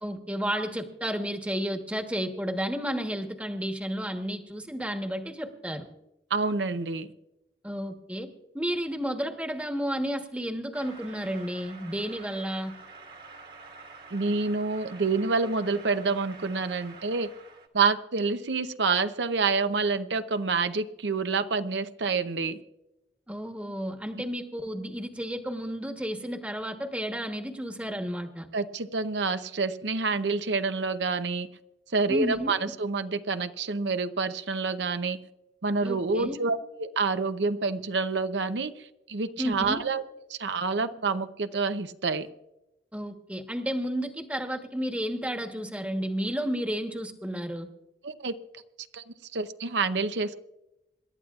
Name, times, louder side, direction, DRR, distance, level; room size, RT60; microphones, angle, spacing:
voice 1, 0.0-5.9 7.6-8.3 8.5-12.7 23.3-28.5 32.1-32.5 35.8-36.4 39.4-39.8 42.9-47.7, equal, 10° right, 5 dB, 1.1 m, -32 dB
voice 2, 6.3-7.1 14.1-17.3 17.7-22.6 28.5-31.5 31.9-35.2 35.6-40.0 40.3-42.3 48.0-48.3 48.9-49.0 49.3-50.3, right 4 dB, 90° right, 10 dB, 0.7 m, -28 dB
sound 1, 10.7-17.7, right 3 dB, 55° right, 1.7 m, -48 dB
26.5 x 12.0 x 2.4 m, 0.91 s
head